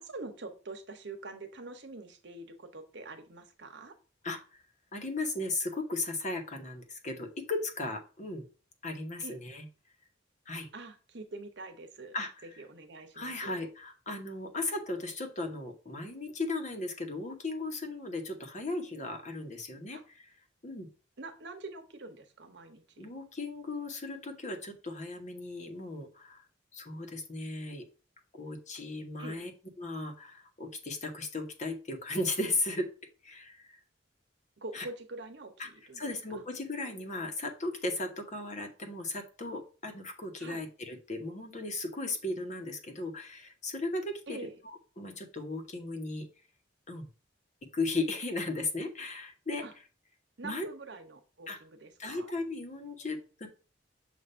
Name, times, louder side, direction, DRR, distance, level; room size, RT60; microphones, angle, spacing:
voice 1, 0.0-3.9 9.2-9.4 10.7-12.2 12.6-13.6 19.9-20.0 21.2-23.0 29.2-29.4 34.6-36.0 40.4-40.6 44.3-44.6 49.6-49.7 50.4-52.3, right 3 dB, 65° right, 6 dB, 1.0 m, -45 dB
voice 2, 4.9-8.4 8.8-9.6 10.5-10.7 12.1-12.3 13.1-20.0 20.6-20.9 23.0-26.4 26.7-27.8 28.3-29.5 29.8-32.9 33.2-33.8 34.7-34.9 35.6-35.7 35.9-44.4 44.6-46.3 46.9-47.1 47.7-49.6 50.4-50.7 51.5-51.6 52.0-53.5, left 2 dB, 40° left, 4 dB, 1.1 m, -36 dB
6.7 x 2.6 x 5.5 m, 0.35 s
head